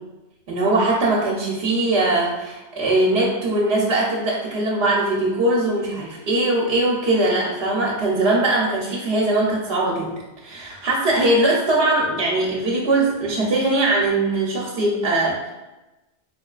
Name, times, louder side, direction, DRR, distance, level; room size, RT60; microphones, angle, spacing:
voice 1, 0.5-10.1 10.4-15.5, right 2 dB, 70° right, -3 dB, 0.9 m, -21 dB
3.7 x 3.0 x 2.3 m, 1.0 s
omnidirectional pair, 1.1 m